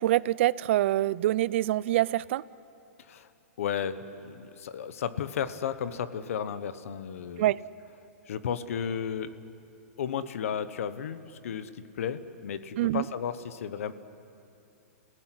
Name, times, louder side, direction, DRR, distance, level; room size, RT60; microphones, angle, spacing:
voice 1, 0.0-2.4 7.4-7.6 12.8-13.1, right 15 dB, 55° right, 21 dB, 0.5 m, -25 dB
voice 2, 3.0-3.3 3.6-7.5 8.3-9.3 10.0-13.9, left 8 dB, 70° left, 13 dB, 1.2 m, -34 dB
28.5 x 17.0 x 9.8 m, 2.8 s
hypercardioid pair, 145°, 8 cm